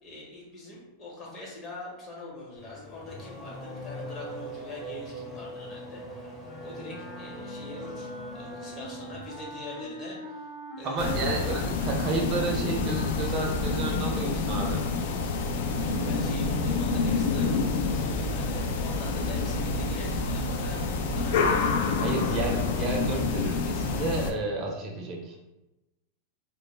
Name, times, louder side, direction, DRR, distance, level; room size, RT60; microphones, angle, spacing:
voice 1, 0.0-6.3 6.6-10.4 10.8-11.2 15.8-22.4, left 1 dB, 30° left, -3 dB, 0.9 m, -43 dB
Race car auto racing / Accelerating revving vroom, 2.6-9.8, equal, 10° left, 0.6 m, -41 dB
Wind instrument woodwind instrument, 6.4-14.2, equal, 90° left, 1.0 m, -44 dB
voice 2, 10.8-14.8 22.0-25.4, right 3 dB, 35° right, 1 dB, 0.4 m, -31 dB
sound 1, 11.0-24.3, left 4 dB, 65° left, 0.3 m, -28 dB
2.1 x 2.0 x 3.2 m, 0.98 s
supercardioid pair, 135°, 0 cm